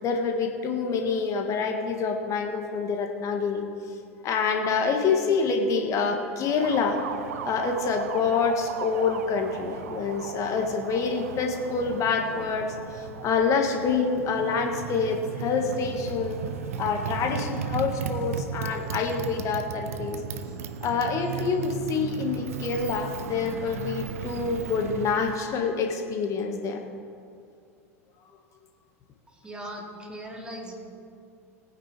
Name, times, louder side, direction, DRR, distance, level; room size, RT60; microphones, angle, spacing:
voice 1, 0.0-3.6 4.2-7.0 7.4-12.6 12.9-20.2 20.8-26.8, left 5 dB, 40° left, 3 dB, 1.7 m, -27 dB
Motorcycle, 6.5-25.4, right 7 dB, 70° right, 0.7 m, -36 dB
voice 2, 29.3-30.7, right 1 dB, 10° right, -1 dB, 2.6 m, -39 dB
19.5 x 9.3 x 3.4 m, 2.4 s
figure-of-eight pair, 80°, 8 cm